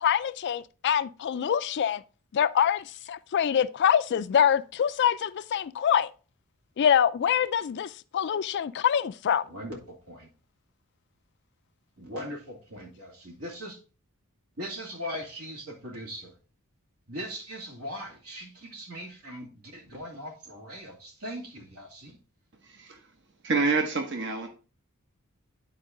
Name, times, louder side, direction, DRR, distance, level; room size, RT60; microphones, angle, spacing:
voice 1, 0.0-2.0 2.3-6.1 6.8-9.4, left 8 dB, 50° left, 0.3 m, -25 dB
voice 2, 9.5-10.3 12.0-13.8 14.6-16.3 17.1-22.2, equal, 75° right, 2.3 m, -40 dB
voice 3, 22.6-23.0 23.4-24.5, right 4 dB, 55° right, 1.0 m, -27 dB
9.6 x 4.5 x 3.7 m
head